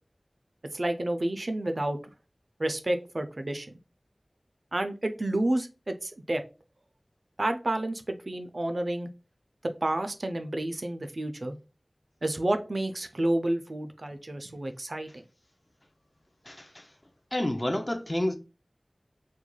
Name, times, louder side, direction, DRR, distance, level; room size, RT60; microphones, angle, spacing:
voice 1, 0.7-2.0 2.6-3.7 4.7-6.4 7.4-9.1 9.6-11.6 12.2-15.2, right 1 dB, 60° right, 0.3 m, -30 dB
voice 2, 16.5-16.9 17.3-18.4, left 1 dB, 30° left, 0.4 m, -29 dB
2.3 x 2.2 x 3.0 m
wide cardioid pair, 45°, 0 cm